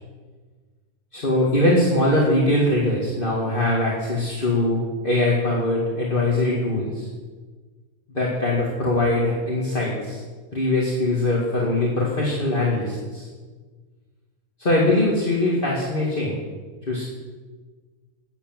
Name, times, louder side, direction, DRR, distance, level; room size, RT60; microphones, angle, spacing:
voice 1, 1.1-7.1 8.1-10.2 10.5-13.3 14.6-16.4 16.9-17.0, left 1 dB, 40° left, -4 dB, 2.3 m, -22 dB
13.0 x 8.8 x 7.5 m, 1.4 s
omnidirectional pair, 1.5 m